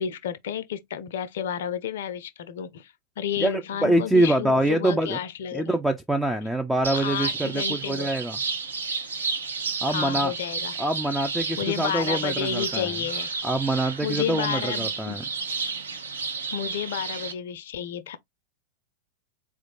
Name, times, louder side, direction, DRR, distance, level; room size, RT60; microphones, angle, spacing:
voice 1, 0.0-5.8 6.9-8.1 9.9-10.7 11.6-13.3 14.0-15.1 16.5-18.2, left 9 dB, 60° left, 0.5 m, -31 dB
voice 2, 3.4-5.2 5.5-8.4 9.8-10.3 10.8-13.0 13.4-15.2, right 1 dB, 5° right, 0.3 m, -25 dB
sound 1, 6.8-17.3, right 4 dB, 70° right, 0.7 m, -31 dB
4.2 x 2.4 x 3.0 m
figure-of-eight pair, 90°, 0 cm